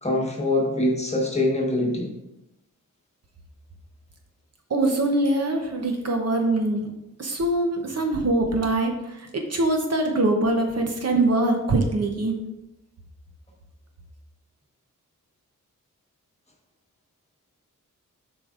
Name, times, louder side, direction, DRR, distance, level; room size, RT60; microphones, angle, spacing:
voice 1, 0.0-2.1, left 1 dB, 20° left, -1 dB, 1.3 m, -24 dB
voice 2, 4.7-6.8 7.2-8.9 9.5-12.3, right 2 dB, 50° right, 3 dB, 0.8 m, -23 dB
7.5 x 5.1 x 2.5 m, 0.89 s
wide cardioid pair, 145°, 32 cm